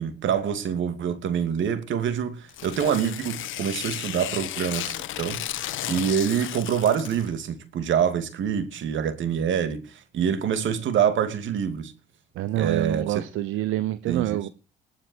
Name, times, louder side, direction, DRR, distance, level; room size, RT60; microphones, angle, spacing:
voice 1, 0.0-5.4 5.9-11.9 12.5-13.2 14.1-14.5, right 8 dB, 75° right, 2.7 m, -26 dB
Tearing, 2.5-7.3, left 13 dB, 80° left, 1.3 m, -34 dB
voice 2, 12.4-14.5, right 13 dB, 90° right, 1.0 m, -27 dB
20.5 x 8.9 x 4.7 m
cardioid pair, 90°, 20 cm